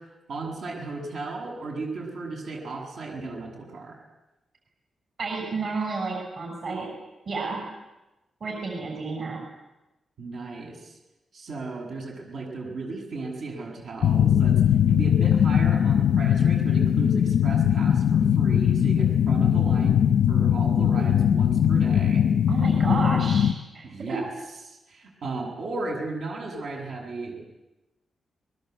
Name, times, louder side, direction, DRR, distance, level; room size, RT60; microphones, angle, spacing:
voice 1, 0.0-4.0 10.2-11.0 11.3-14.6 14.9-22.2 23.8-24.3 24.6-27.4, right 3 dB, 65° right, 0 dB, 7.6 m, -35 dB
voice 2, 5.2-6.9 7.3-7.6 8.4-9.4 22.5-23.9, right 3 dB, 45° right, 1 dB, 6.7 m, -31 dB
sound 1, 14.0-23.5, left 9 dB, 80° left, 0.8 m, -20 dB
29.5 x 21.5 x 8.2 m, 1.0 s
wide cardioid pair, 160°, 0 cm